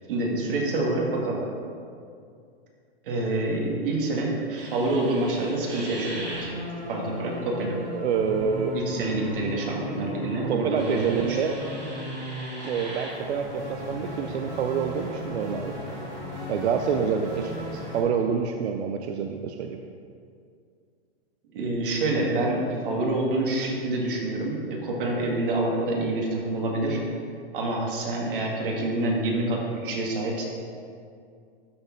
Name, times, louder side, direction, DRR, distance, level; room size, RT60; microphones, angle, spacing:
voice 1, 0.1-1.5 3.0-6.5 6.9-7.8 8.7-11.4 21.5-27.0 27.5-30.4, right 2 dB, 55° right, -1 dB, 1.8 m, -27 dB
sound 1, 4.6-18.0, equal, 20° right, 1.8 m, -36 dB
voice 2, 7.9-8.8 10.4-11.6 12.6-15.7 16.5-19.8, right 6 dB, 90° right, 4 dB, 0.6 m, -27 dB
12.5 x 4.4 x 3.9 m, 2.3 s
supercardioid pair, 175°, 32 cm